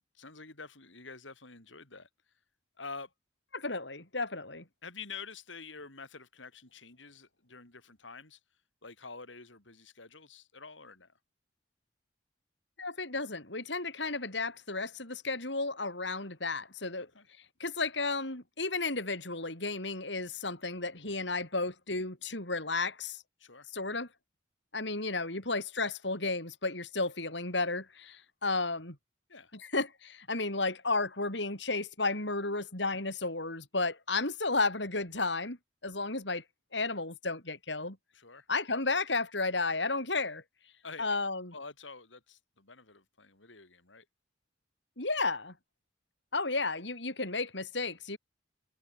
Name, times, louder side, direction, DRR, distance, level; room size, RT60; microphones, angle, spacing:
voice 1, 0.0-2.1 2.8-3.1 4.8-8.4 8.8-11.1 17.0-17.3 23.4-23.7 29.3-29.5 38.1-38.5 40.8-41.2 41.5-44.1, left 4 dB, 90° left, 5.5 m, -48 dB
voice 2, 3.5-4.6 12.8-17.1 17.6-23.2 23.7-24.1 24.7-29.0 29.5-35.6 35.8-36.4 36.7-38.0 38.5-40.4 41.0-41.5 45.0-45.5 46.3-48.2, left 3 dB, 70° left, 6.9 m, -33 dB
head